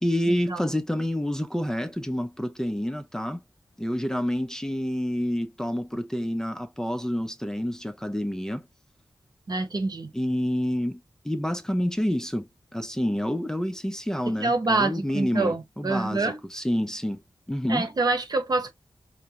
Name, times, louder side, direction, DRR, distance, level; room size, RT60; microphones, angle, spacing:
voice 1, 0.0-3.4 3.8-8.6 10.1-17.2 17.5-17.9, equal, 5° left, 0.5 m, -28 dB
voice 2, 9.5-10.1 14.4-16.4 17.7-18.7, right 3 dB, 55° right, 0.9 m, -26 dB
4.9 x 2.1 x 2.8 m
cardioid pair, 60°, 8 cm